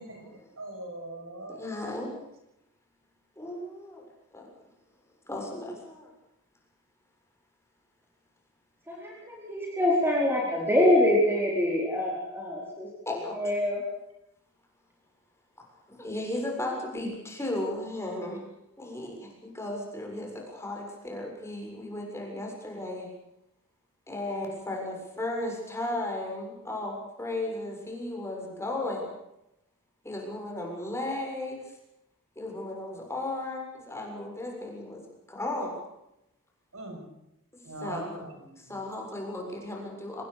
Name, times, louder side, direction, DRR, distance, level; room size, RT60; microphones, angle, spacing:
voice 1, 0.0-0.4 1.5-2.1 3.4-4.0 4.3-4.5 5.3-6.1 13.1-13.4 15.9-18.5 18.8-23.1 24.1-29.1 30.0-31.6 32.4-35.0 35.3-35.8 37.8-38.2 38.6-40.2, left 1 dB, 15° left, 0 dB, 7.0 m, -35 dB
voice 2, 0.6-1.6 36.7-37.0 37.6-38.3, right 1 dB, 65° right, 3 dB, 7.0 m, -40 dB
voice 3, 8.9-12.9 13.4-13.8, left 1 dB, 10° right, -2 dB, 4.4 m, -25 dB
25.5 x 19.5 x 6.8 m, 0.84 s
head